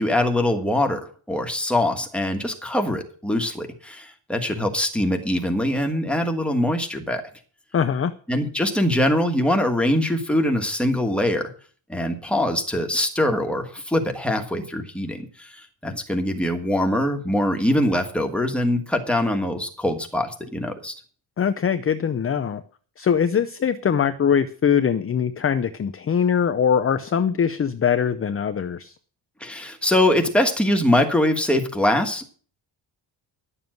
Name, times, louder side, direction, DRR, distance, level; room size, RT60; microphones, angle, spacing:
voice 1, 0.0-7.2 8.3-11.5 11.9-20.9 29.4-32.3, left 1 dB, ahead, 3 dB, 1.4 m, -23 dB
voice 2, 7.7-8.1 21.4-22.6 23.0-28.9, left 7 dB, 30° left, 10 dB, 0.5 m, -22 dB
11.0 x 7.1 x 7.6 m, 0.43 s
wide cardioid pair, 165°, 49 cm